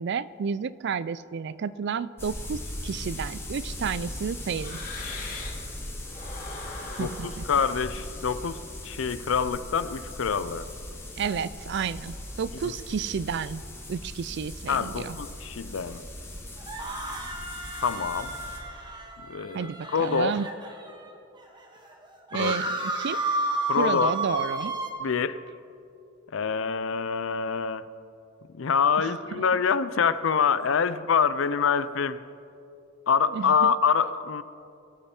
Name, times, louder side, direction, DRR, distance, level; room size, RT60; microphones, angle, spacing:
voice 1, 0.0-4.8 7.0-7.4 11.2-13.6 13.9-15.2 19.5-20.5 22.3-23.2 23.8-24.7 29.0-29.4 33.3-33.7, right 6 dB, 55° right, 17 dB, 0.4 m, -31 dB
sound 1, 2.2-18.6, left 1 dB, 10° left, 1.7 m, -39 dB
sound 2, 3.1-5.7 6.0-9.1, left 3 dB, 45° left, 2.4 m, -42 dB
voice 2, 7.0-10.7 12.6-12.7 14.7-16.0 17.8-18.4 19.3-20.3 22.3-22.5 23.7-24.1 25.0-25.5 26.3-27.9 28.5-32.2 33.1-34.4, left 6 dB, 70° left, 15 dB, 0.5 m, -26 dB
sound 3, 16.6-21.1 21.6-21.7 21.8-24.9, right 1 dB, 20° right, 1.2 m, -32 dB
22.0 x 8.8 x 4.4 m, 2.7 s
head